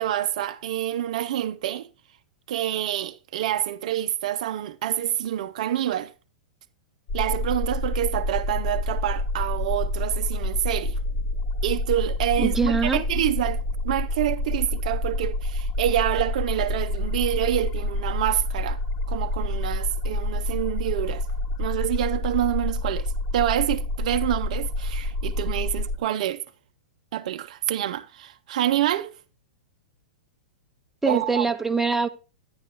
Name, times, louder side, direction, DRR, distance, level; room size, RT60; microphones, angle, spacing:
voice 1, 0.0-1.9 2.5-6.1 7.1-11.0 11.6-18.8 19.1-21.2 21.6-26.4 27.1-29.1 31.1-31.4, right 12 dB, 60° right, 0.5 m, -27 dB
sound 1, 7.1-26.0, left 1 dB, 55° left, 1.8 m, -28 dB
voice 2, 12.4-13.0 31.0-32.1, right 4 dB, 5° right, 0.7 m, -23 dB
10.5 x 9.5 x 2.8 m
hypercardioid pair, 110°, 4 cm